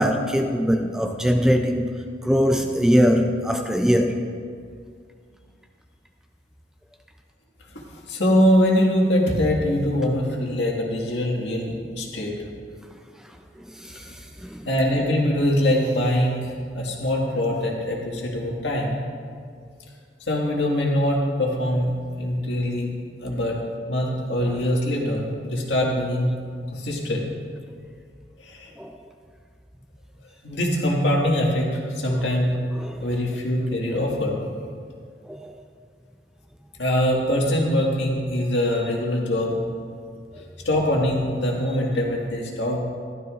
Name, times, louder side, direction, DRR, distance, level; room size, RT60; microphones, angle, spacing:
voice 1, 0.0-1.9 2.2-4.2 13.8-14.0 14.4-14.6 24.5-24.6 28.8-28.9 32.8-33.0 35.3-35.5, equal, 5° right, 4 dB, 0.4 m, -21 dB
voice 2, 7.7-12.3 14.7-19.0 20.2-22.9 23.2-23.6 23.9-26.3 26.7-27.3 28.4-28.7 30.4-32.5 33.0-34.4 36.8-39.6 40.6-42.8, left 1 dB, 75° left, -2 dB, 1.9 m, -23 dB
14.5 x 12.0 x 2.5 m, 2.1 s
head